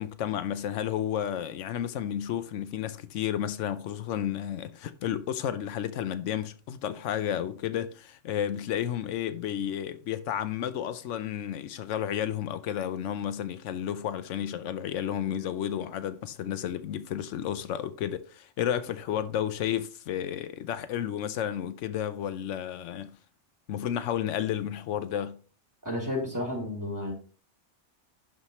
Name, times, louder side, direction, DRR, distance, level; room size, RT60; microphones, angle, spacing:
voice 1, 0.0-23.2 23.7-25.4, left 10 dB, 85° left, 0.9 m, -32 dB
voice 2, 25.8-27.1, left 1 dB, 15° right, 3.2 m, -31 dB
11.5 x 4.9 x 3.0 m
omnidirectional pair, 1.2 m